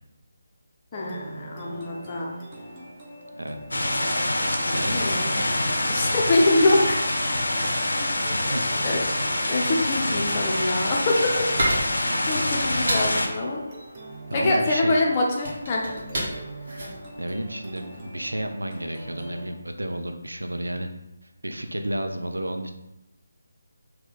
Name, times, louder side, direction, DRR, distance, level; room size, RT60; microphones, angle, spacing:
voice 1, 0.9-2.4 4.9-5.4 5.9-7.0 8.8-9.0 9.5-11.5 12.3-13.6 14.3-15.8, left 2 dB, 25° left, -2 dB, 0.7 m, -24 dB
sound 1, 0.9-19.5, right 1 dB, 25° right, 0.8 m, -42 dB
sound 2, 3.7-13.3, left 1 dB, 65° left, 0.6 m, -25 dB
voice 2, 4.6-5.0 8.3-8.7 14.3-15.0 17.2-20.9 21.2-22.7, right 1 dB, 75° right, 5 dB, 0.4 m, -31 dB
sound 3, 11.1-18.1, right 1 dB, 45° right, 1.1 m, -32 dB
4.0 x 2.2 x 3.8 m, 0.89 s
figure-of-eight pair, 150°, 0 cm